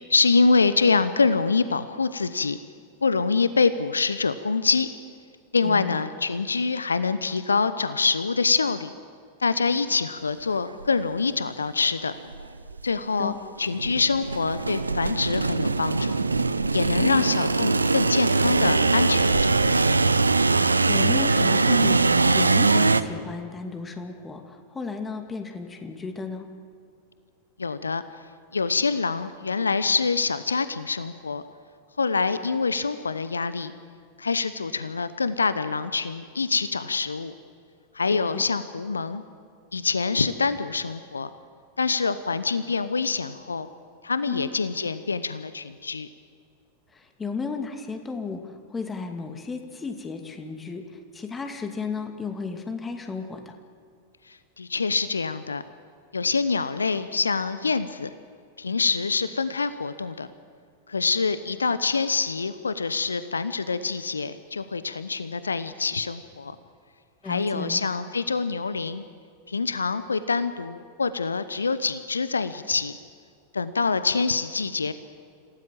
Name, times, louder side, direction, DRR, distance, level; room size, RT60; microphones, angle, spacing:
voice 1, 0.1-2.6 3.0-4.9 5.5-8.9 9.4-12.1 12.8-16.2 16.7-19.8 27.6-28.0 28.5-31.4 32.0-33.7 34.2-37.3 37.9-39.2 39.7-41.3 41.8-43.7 44.0-46.1 54.3-55.6 56.1-58.1 58.6-60.3 60.9-66.5 67.2-69.0 69.5-72.9 73.5-74.9, left 4 dB, 75° left, 14 dB, 0.8 m, -25 dB
voice 2, 5.6-6.0 13.2-13.4 17.0-17.2 20.9-26.5 38.1-38.4 44.3-44.5 46.9-50.8 51.1-53.5 67.2-67.8, left 4 dB, 15° left, 5 dB, 2.4 m, -34 dB
sound 1, 10.8-10.9 11.6-11.7 12.3-12.9 13.6-23.0, right 3 dB, 80° right, 0.7 m, -22 dB
27.5 x 17.5 x 7.6 m, 2.3 s
figure-of-eight pair, 90°, 0 cm